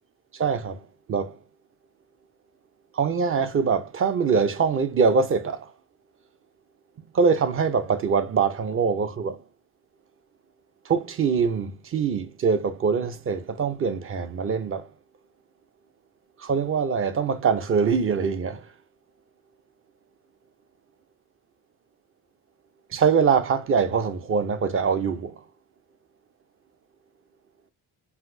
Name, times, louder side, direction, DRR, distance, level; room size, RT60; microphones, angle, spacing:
voice 1, 0.3-0.8 1.1-1.4 2.9-5.7 7.1-9.4 10.9-14.9 16.4-18.6 22.9-25.3, right 5 dB, 35° right, 0.6 m, -23 dB
5.7 x 2.6 x 2.6 m
cardioid pair, 135°, 39 cm